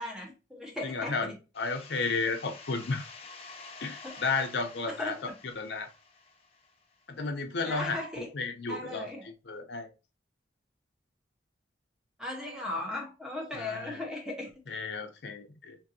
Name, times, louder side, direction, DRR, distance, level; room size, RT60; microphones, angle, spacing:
voice 1, 0.0-1.4 4.0-4.1 4.9-5.4 7.7-8.3 8.7-9.3 12.2-14.5, left 2 dB, 5° right, 0.7 m, -37 dB
voice 2, 0.8-3.0 3.8-5.1 5.6-5.9 7.1-9.9 13.5-14.0 14.7-15.8, left 4 dB, 75° left, 0.6 m, -33 dB
sound 1, 1.5-7.0, left 4 dB, 35° left, 0.5 m, -49 dB
3.8 x 2.6 x 2.6 m
head